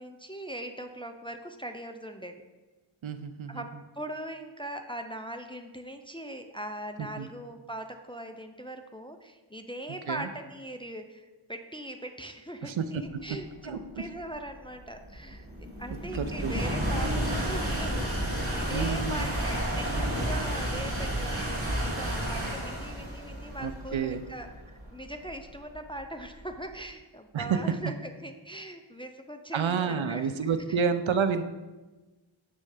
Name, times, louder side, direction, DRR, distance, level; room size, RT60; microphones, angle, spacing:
voice 1, 0.0-2.4 3.5-15.5 15.8-21.5 21.9-30.3, right 1 dB, 10° left, 6 dB, 0.4 m, -40 dB
voice 2, 3.0-3.6 7.0-7.3 10.1-10.3 12.6-13.0 13.3-13.4 13.6-13.8 15.9-16.5 18.7-19.3 23.6-24.2 27.3-27.9 29.5-31.4, right 6 dB, 70° right, 10 dB, 0.5 m, -29 dB
sound 1, 13.4-26.7, right 1 dB, 25° right, 1.6 m, -31 dB
7.7 x 3.2 x 4.8 m, 1.2 s
wide cardioid pair, 45°, 49 cm